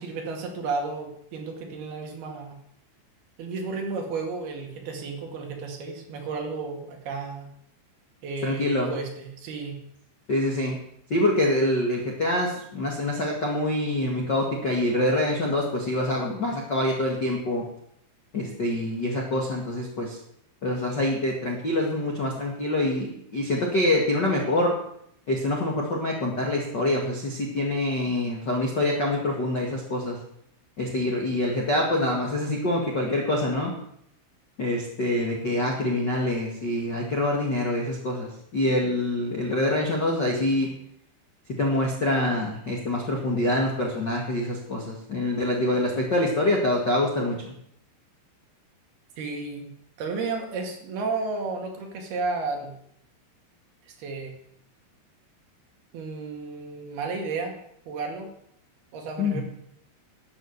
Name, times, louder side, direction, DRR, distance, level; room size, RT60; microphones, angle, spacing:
voice 1, 0.0-2.6 3.4-7.5 8.2-9.8 49.2-49.7 50.0-52.7 53.8-54.3 55.9-57.6 57.9-58.3 58.9-59.4, right 4 dB, 55° right, 2 dB, 3.7 m, -32 dB
voice 2, 8.4-8.9 10.3-10.8 11.1-17.6 18.3-20.2 20.6-24.7 25.3-30.2 30.8-33.7 34.6-40.7 41.6-47.5 59.2-59.4, left 1 dB, 90° left, -2 dB, 0.9 m, -25 dB
12.0 x 9.2 x 8.0 m, 0.71 s
omnidirectional pair, 5.7 m